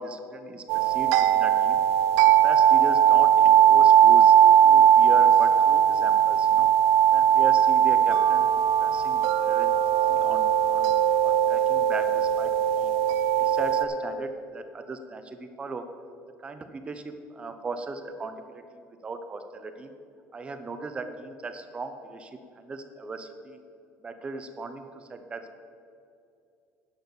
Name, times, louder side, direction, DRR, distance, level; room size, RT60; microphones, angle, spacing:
voice 1, 0.0-1.8 2.4-4.3 4.6-6.7 7.1-8.5 8.8-9.8 10.1-10.9 11.2-12.9 13.4-15.8 16.4-19.9 20.3-22.3 22.6-23.6 24.0-25.4, right 3 dB, 20° right, 8 dB, 0.8 m, -37 dB
sound 1, 0.7-13.8, right 10 dB, 85° right, 0.6 m, -19 dB
10.5 x 6.4 x 7.1 m, 2.5 s
cardioid pair, 150°, 6 cm